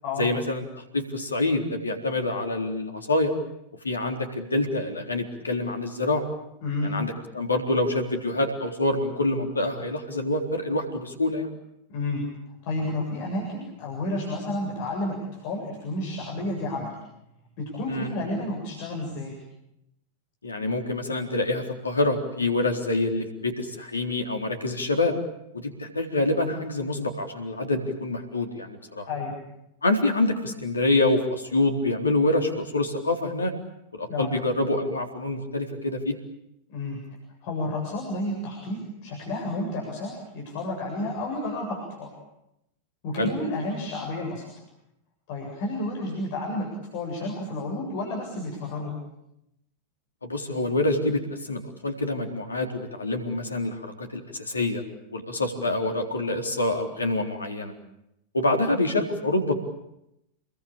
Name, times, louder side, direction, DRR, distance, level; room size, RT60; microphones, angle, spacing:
voice 1, 0.2-3.3 3.8-6.3 6.8-11.5 17.9-18.1 20.4-25.1 25.5-29.1 29.8-33.5 34.0-36.1 43.2-43.3 50.2-54.8 55.1-57.7 58.3-59.5, left 2 dB, 75° left, 4 dB, 3.9 m, -26 dB
voice 2, 11.9-12.2 12.6-17.0 17.6-19.4 29.1-29.4 34.1-34.3 36.7-37.0 37.4-42.1 43.0-44.5 45.3-46.7 46.9-48.9, left 2 dB, 45° left, -1 dB, 7.6 m, -31 dB
29.0 x 21.5 x 8.8 m, 0.84 s
figure-of-eight pair, 90°, 0 cm